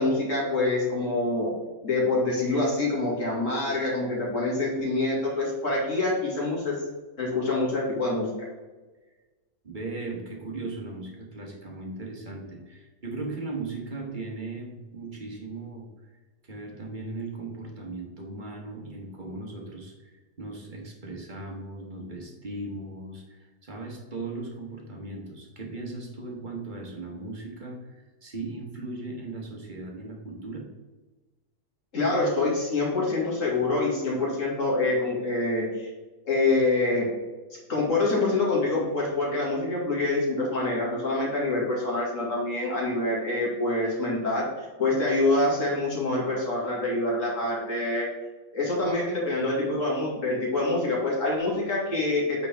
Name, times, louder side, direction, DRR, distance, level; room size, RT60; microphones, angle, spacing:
voice 1, 0.0-1.5 1.8-6.8 7.2-8.5 31.9-35.9 36.3-37.1 37.7-48.1 48.5-52.5, left 2 dB, 45° left, -4 dB, 2.4 m, -26 dB
voice 2, 9.6-15.9 16.4-30.7, right 3 dB, 30° right, 0 dB, 1.2 m, -38 dB
8.1 x 4.6 x 3.5 m, 1.2 s
omnidirectional pair, 1.9 m